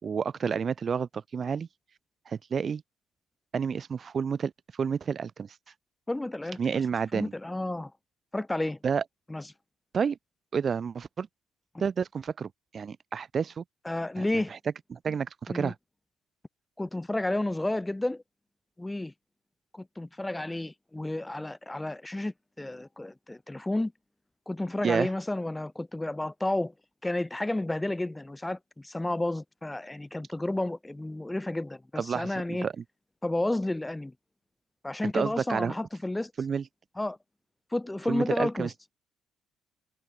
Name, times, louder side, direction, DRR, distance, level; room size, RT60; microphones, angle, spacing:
voice 1, 0.0-1.7 2.3-2.8 3.5-5.6 6.6-7.3 8.8-9.0 9.9-10.2 10.5-11.3 11.8-13.6 14.2-14.3 14.5-14.6 14.9-15.7 24.8-25.1 32.0-32.7 35.1-35.7 36.4-36.6 38.1-38.7, right 6 dB, 40° right, 1.9 m, -30 dB
voice 2, 6.1-6.8 7.1-7.9 8.3-8.8 9.3-9.4 11.7-11.8 13.9-14.5 15.5-15.7 16.8-18.2 18.8-19.1 19.7-23.9 24.5-26.7 27.0-32.7 33.2-34.1 34.8-36.3 37.0-37.2 37.7-38.7, left 1 dB, 10° left, 1.9 m, -31 dB
cardioid pair, 100°, 0 cm